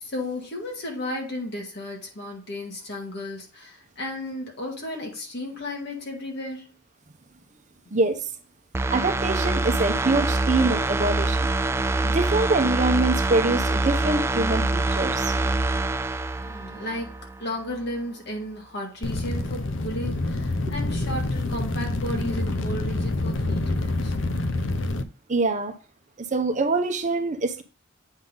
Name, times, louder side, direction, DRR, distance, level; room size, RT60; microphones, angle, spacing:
voice 1, 0.0-6.7 16.4-24.4, left 1 dB, 60° left, 1.8 m, -34 dB
sound 1, 8.7-17.4 17.8-17.9, right 2 dB, 15° right, 0.3 m, -25 dB
voice 2, 8.9-11.5 12.0-15.3 20.7-20.8 25.3-25.8 26.3-27.6, right 3 dB, 40° right, 0.7 m, -24 dB
sound 2, 19.0-25.0, left 2 dB, 75° left, 0.6 m, -27 dB
8.2 x 3.8 x 3.8 m
head